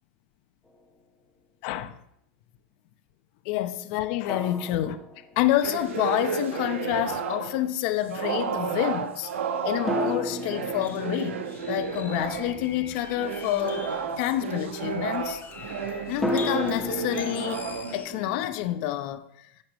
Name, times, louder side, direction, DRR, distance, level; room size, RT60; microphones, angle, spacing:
sound 1, 0.7-0.8 4.3-5.8 9.9-13.5 16.2-19.0, left 1 dB, ahead, 1.4 m, -35 dB
voice 1, 1.6-1.9 3.4-5.0 5.4-9.3 9.6-11.4 11.7-15.4 16.1-17.6 17.9-19.5, left 13 dB, 55° left, 0.8 m, -28 dB
sound 2, 5.6-7.7 8.1-12.6 13.1-18.5, right 6 dB, 85° right, 1.0 m, -32 dB
sound 3, 10.7-18.1, left 7 dB, 25° left, 1.0 m, -44 dB
11.5 x 7.9 x 3.1 m
hypercardioid pair, 115°, 7 cm